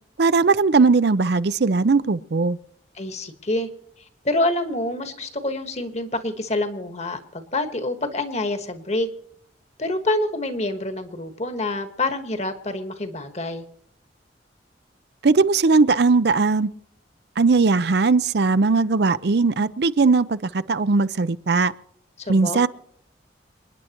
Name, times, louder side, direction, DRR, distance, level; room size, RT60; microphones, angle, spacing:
voice 1, 0.2-2.6 15.2-16.7 17.4-21.7 22.3-22.7, right 4 dB, 60° right, 0.5 m, -19 dB
voice 2, 3.0-3.7 4.2-9.1 9.8-13.6 22.2-22.7, left 2 dB, 35° left, 1.4 m, -27 dB
27.0 x 10.0 x 3.0 m
head